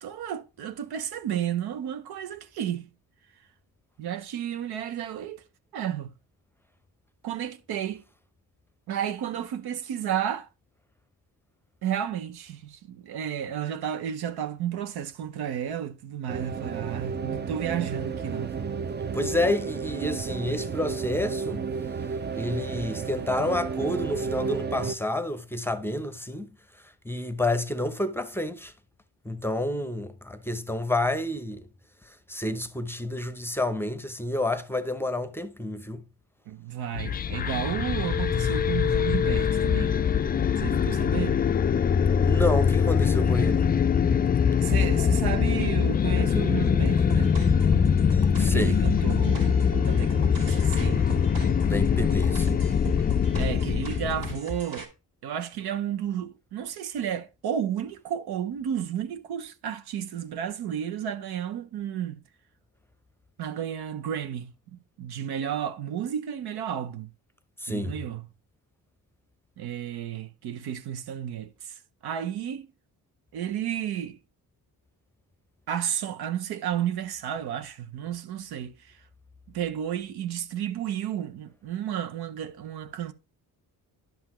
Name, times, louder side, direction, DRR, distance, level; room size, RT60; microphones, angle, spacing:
voice 1, 0.0-2.9 4.0-5.4 5.7-6.1 7.2-8.0 8.9-10.5 11.8-18.5 36.5-39.9 40.6-41.4 44.6-47.3 48.4-51.2 51.9-52.1 53.3-54.9 55.2-62.2 63.4-67.1 67.7-68.2 69.6-71.7 72.0-72.7 73.3-74.2 75.7-78.7 79.5-83.1, right 9 dB, 80° right, 0.8 m, -32 dB
sound 1, 16.3-24.9, right 5 dB, 30° right, 0.5 m, -32 dB
voice 2, 19.1-21.6 22.3-26.5 27.0-28.7 29.2-31.7 32.1-36.0 42.2-43.7 48.4-48.8 51.6-52.6 67.6-67.9, left 1 dB, 5° left, 0.7 m, -29 dB
sound 2, 36.9-54.4, left 7 dB, 25° left, 0.3 m, -23 dB
sound 3, 46.8-54.8, equal, 60° right, 2.4 m, -36 dB
10.5 x 5.5 x 3.0 m
cardioid pair, 75°, 38 cm